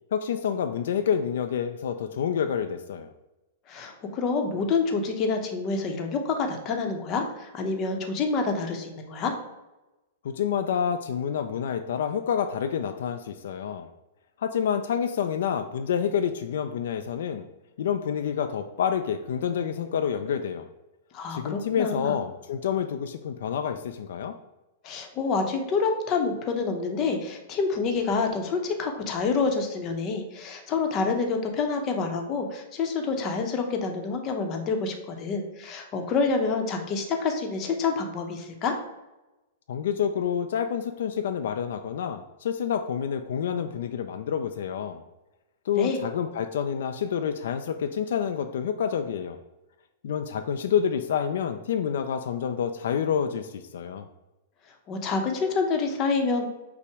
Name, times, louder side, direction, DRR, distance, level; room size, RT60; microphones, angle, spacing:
voice 1, 0.1-3.1 10.2-13.9 14.4-17.5 17.8-20.6 21.3-24.3 39.7-45.0 45.7-49.4 50.0-54.1, left 8 dB, 75° left, 7 dB, 0.3 m, -28 dB
voice 2, 3.7-9.3 21.1-22.1 24.8-38.7 45.8-46.0 54.9-56.5, left 4 dB, 30° left, 4 dB, 0.7 m, -27 dB
5.6 x 2.0 x 4.6 m, 1.0 s
hypercardioid pair, 150°, 0 cm